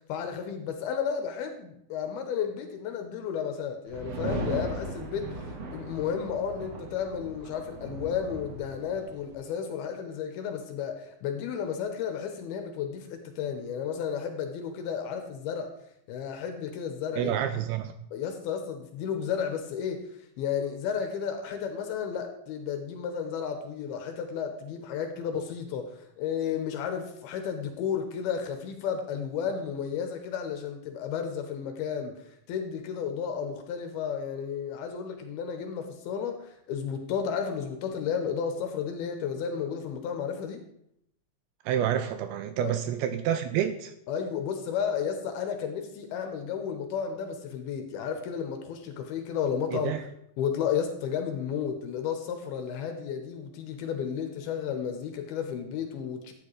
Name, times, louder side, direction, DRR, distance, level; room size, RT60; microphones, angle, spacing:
voice 1, 0.1-15.8 16.1-17.3 18.1-20.1 20.4-40.6 42.6-42.7 44.1-49.9 50.4-56.3, left 7 dB, 75° left, 5 dB, 2.5 m, -33 dB
sound 1, 3.9-9.3, right 1 dB, 60° right, 1.7 m, -37 dB
voice 2, 17.2-17.9 41.7-43.9 49.7-50.0, right 10 dB, 80° right, 9 dB, 2.4 m, -28 dB
12.5 x 9.0 x 3.2 m, 0.74 s
omnidirectional pair, 5.0 m